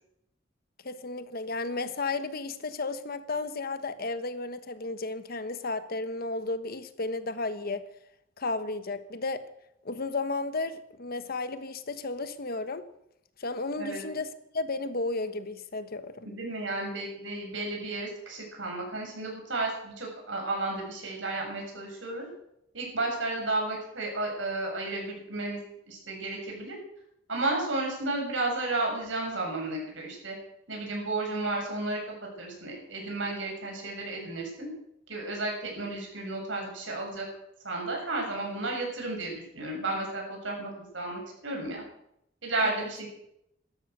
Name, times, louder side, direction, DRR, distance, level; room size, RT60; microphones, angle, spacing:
voice 1, 0.8-7.8 8.4-9.4 9.8-12.9 13.4-14.3 14.5-16.3 42.6-42.8, left 3 dB, 55° left, 11 dB, 1.2 m, -33 dB
voice 2, 16.2-22.3 22.7-25.6 25.9-26.8 27.3-30.4 30.7-34.7 35.1-37.3 37.6-41.8 42.4-43.1, right 2 dB, 75° right, 0 dB, 7.3 m, -33 dB
16.0 x 13.0 x 6.7 m, 0.78 s
head